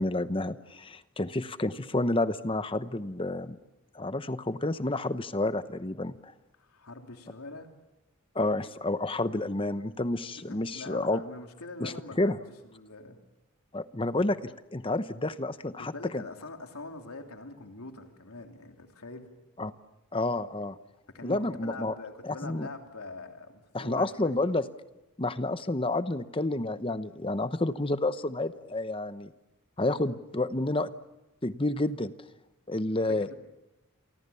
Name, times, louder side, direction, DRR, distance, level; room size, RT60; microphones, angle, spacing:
voice 1, 0.0-3.6 3.9-6.2 8.3-11.2 11.8-12.4 13.7-16.2 19.6-19.7 20.1-20.7 21.2-21.9 22.2-22.7 23.7-24.6 25.2-29.3 29.8-30.9 31.4-32.1 32.7-33.3, left 2 dB, 25° left, 12 dB, 0.9 m, -30 dB
voice 2, 6.6-7.7 10.5-12.3 12.7-13.2 15.8-19.3 21.1-24.4 33.2-33.3, left 2 dB, 85° left, 4 dB, 3.1 m, -43 dB
28.5 x 24.5 x 7.0 m, 0.96 s
head